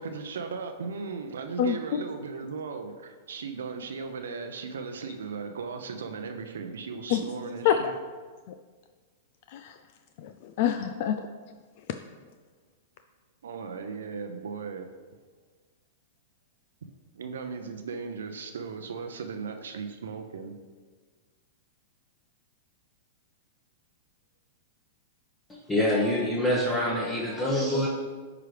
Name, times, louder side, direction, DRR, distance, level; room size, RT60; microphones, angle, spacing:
voice 1, 0.0-8.0 13.4-14.9 17.1-20.5, right 5 dB, 85° right, 6 dB, 0.6 m, -37 dB
voice 2, 1.6-2.0 7.1-7.2 7.6-7.8 8.5-8.6 9.5-9.8 10.2-11.3, left 10 dB, 60° left, 8 dB, 0.3 m, -26 dB
voice 3, 25.5-27.9, left 1 dB, 15° left, -5 dB, 1.2 m, -26 dB
9.7 x 4.8 x 3.3 m, 1.5 s
hypercardioid pair, 120°, 0 cm